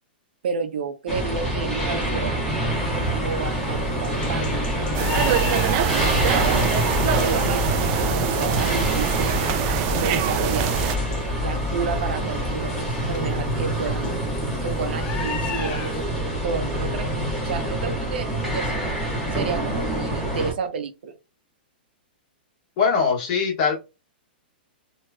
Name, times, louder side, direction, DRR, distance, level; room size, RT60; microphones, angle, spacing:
voice 1, 0.4-2.4 3.2-4.6 5.8-7.7 8.0-9.4 9.9-10.7 11.3-14.1 14.6-17.1 17.4-18.9 19.3-21.1, right 5 dB, 75° right, 0.7 m, -31 dB
sound 1, 1.1-20.5, right 1 dB, 5° left, 1.3 m, -26 dB
sound 2, 2.7-16.0, left 6 dB, 20° left, 0.5 m, -39 dB
sound 3, 4.9-11.0, right 9 dB, 35° right, 0.4 m, -24 dB
voice 2, 22.8-23.8, left 5 dB, 40° left, 1.5 m, -21 dB
3.0 x 2.9 x 2.3 m
hypercardioid pair, 155°, 6 cm